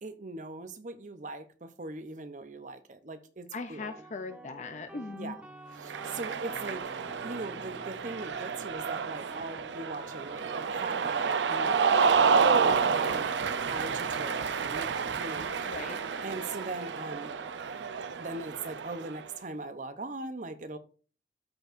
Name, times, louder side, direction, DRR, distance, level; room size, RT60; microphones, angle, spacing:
voice 1, 0.0-3.9 5.1-5.4 5.8-12.0 12.3-13.3 13.7-15.8 16.2-17.4 18.2-20.8, right 2 dB, 45° right, 10 dB, 0.7 m, -40 dB
voice 2, 3.5-5.4 15.6-16.0, left 3 dB, 40° left, 8 dB, 0.5 m, -39 dB
sound 1, 3.8-17.6, right 1 dB, 5° right, 0.7 m, -50 dB
Cheering, 5.8-19.2, right 5 dB, 90° right, 0.5 m, -29 dB
13.0 x 4.5 x 2.6 m, 0.38 s
head